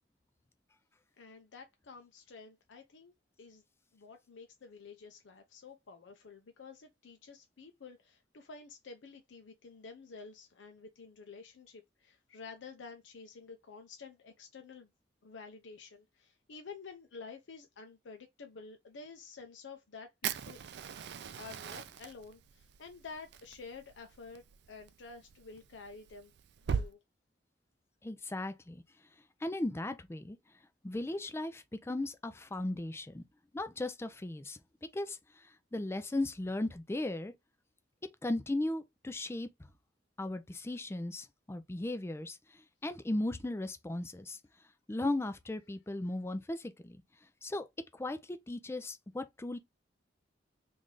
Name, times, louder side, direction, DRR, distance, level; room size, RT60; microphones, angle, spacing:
voice 1, 1.2-3.1 3.4-3.6 3.9-14.9 15.2-20.6 21.4-26.3 26.7-27.0, left 4 dB, 85° left, 0.5 m, -50 dB
Fire, 20.2-26.9, right 7 dB, 65° right, 0.4 m, -41 dB
voice 2, 28.0-28.8 29.4-30.4 30.8-33.2 33.5-34.6 34.9-35.2 35.7-37.3 38.2-39.5 40.2-42.4 42.8-44.4 44.9-47.0 47.4-47.7 47.9-49.6, left 2 dB, 15° left, 0.4 m, -36 dB
3.2 x 2.6 x 3.7 m
head